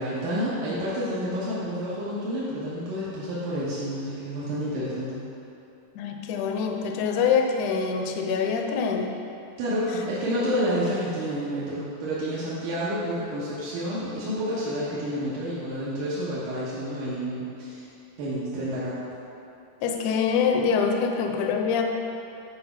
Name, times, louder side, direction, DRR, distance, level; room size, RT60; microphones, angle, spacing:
voice 1, 0.0-5.2 9.6-17.9 18.2-19.0, equal, 85° right, -9 dB, 3.0 m, -29 dB
voice 2, 6.0-9.2 9.9-10.0 19.8-21.8, left 6 dB, 75° left, 3 dB, 2.0 m, -25 dB
10.5 x 5.1 x 5.9 m, 2.7 s
omnidirectional pair, 3.6 m